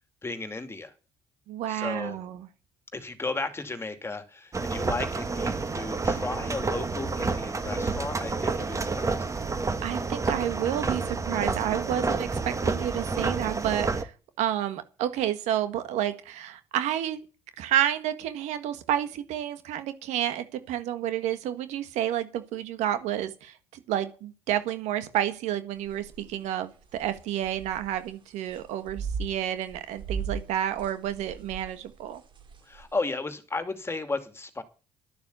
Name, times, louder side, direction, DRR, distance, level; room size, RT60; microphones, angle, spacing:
voice 1, 0.2-0.9 1.7-2.2 2.9-9.3 32.6-34.6, left 3 dB, 20° left, 9 dB, 2.5 m, -34 dB
voice 2, 1.5-2.5 9.6-17.2 17.6-32.2, right 11 dB, 75° right, 11 dB, 1.5 m, -30 dB
sound 1, 4.5-14.0, right 4 dB, 25° right, 1.7 m, -29 dB
sound 2, 25.9-26.3 26.8-28.1 28.5-33.0, right 5 dB, 45° right, 2.6 m, -37 dB
12.0 x 7.0 x 8.1 m, 0.34 s
supercardioid pair, 75°, 12 cm